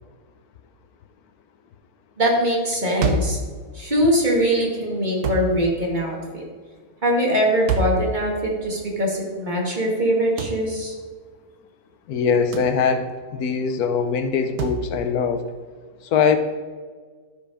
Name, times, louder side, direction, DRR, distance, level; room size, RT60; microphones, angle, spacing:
voice 1, 2.2-3.4 3.7-6.4 7.0-11.0, equal, 30° right, -2 dB, 2.0 m, -22 dB
sound 1, 3.0-3.4 5.2-5.6 7.7-8.1 10.4-10.6 12.5-12.8 14.6-14.9, right 3 dB, 85° right, 1.4 m, -24 dB
voice 2, 12.1-13.1 13.3-15.4 16.0-16.4, left 6 dB, 80° left, 9 dB, 1.2 m, -21 dB
12.0 x 5.1 x 4.9 m, 1.5 s
omnidirectional pair, 1.6 m